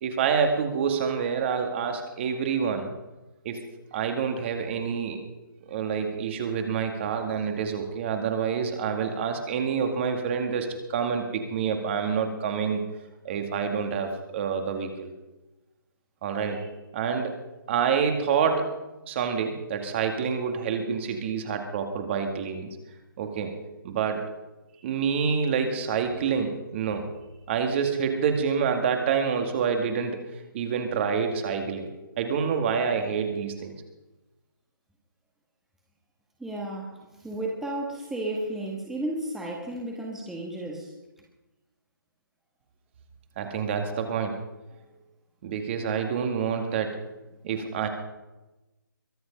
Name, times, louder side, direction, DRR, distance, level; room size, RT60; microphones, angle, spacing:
voice 1, 0.0-2.9 3.4-3.6 3.9-5.2 5.7-12.8 13.2-15.1 16.2-16.7 16.9-17.3 17.7-18.7 19.1-22.7 23.2-23.5 23.8-24.2 24.8-27.1 27.5-30.2 30.5-31.9 32.2-33.7 43.4-44.4 45.4-47.1 47.4-47.9, right 6 dB, 30° right, 5 dB, 2.1 m, -27 dB
voice 2, 36.4-40.9, right 1 dB, 5° right, -1 dB, 1.6 m, -33 dB
23.0 x 8.0 x 5.3 m, 1.0 s
figure-of-eight pair, 150°, 12 cm